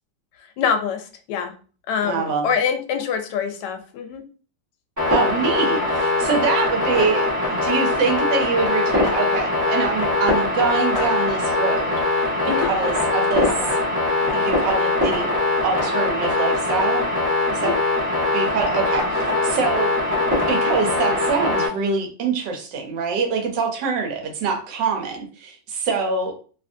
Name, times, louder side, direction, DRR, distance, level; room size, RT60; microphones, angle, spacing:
voice 1, 0.6-1.5 1.9-4.2 12.4-12.7 17.6-17.8, left 7 dB, 75° left, 6 dB, 1.1 m, -25 dB
voice 2, 2.0-2.5 5.1-12.2 12.4-13.5 14.3-15.3 15.6-17.0 17.5-17.7 18.3-19.9 20.5-26.3, right 5 dB, 85° right, 3 dB, 1.4 m, -25 dB
sound 1, 5.0-21.7, left 2 dB, 15° right, 0.9 m, -21 dB
2.9 x 2.6 x 2.5 m, 0.38 s
omnidirectional pair, 1.9 m